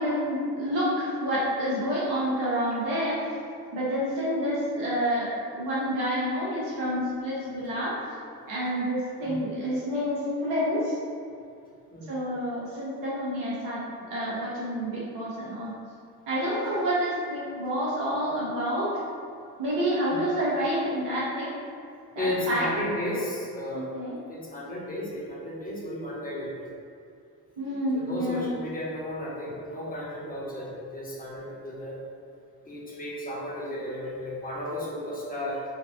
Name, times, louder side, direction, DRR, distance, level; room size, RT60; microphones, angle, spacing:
voice 1, 0.0-3.3 3.7-8.0 8.5-11.0 12.1-13.8 14.1-15.7 16.3-19.0 19.6-21.5 22.1-22.7 23.7-24.2 27.6-28.5, equal, 75° right, -7 dB, 1.2 m, -28 dB
voice 2, 22.2-23.9 24.3-26.7 27.9-32.0 32.6-35.6, left 1 dB, 20° left, -5 dB, 1.1 m, -34 dB
3.9 x 2.2 x 2.8 m, 2.4 s
hypercardioid pair, 50°, 44 cm